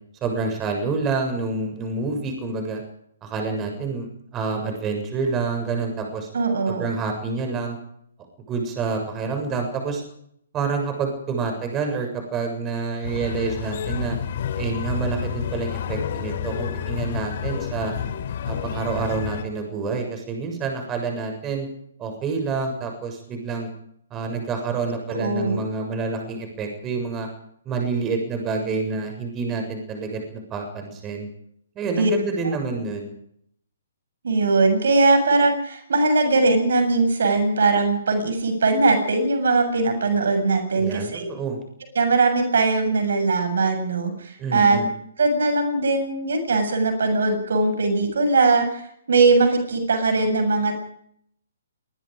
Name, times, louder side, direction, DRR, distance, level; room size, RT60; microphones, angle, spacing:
voice 1, 0.2-2.8 3.2-4.1 4.3-6.3 6.7-7.8 8.5-10.0 10.5-14.2 14.6-17.9 18.5-21.7 22.0-23.7 24.1-27.3 27.7-31.3 31.8-33.1 40.8-41.6 44.4-44.9, right 4 dB, 20° right, 4 dB, 7.2 m, -28 dB
voice 2, 6.3-7.0 25.1-25.6 32.0-32.1 32.4-32.5 34.2-41.2 41.9-44.8 45.2-48.8 49.1-50.8, right 3 dB, 65° right, 7 dB, 7.3 m, -20 dB
sound 1, 13.0-19.4, left 9 dB, 50° left, 3.2 m, -29 dB
25.5 x 21.0 x 5.2 m, 0.67 s
figure-of-eight pair, 130°, 0 cm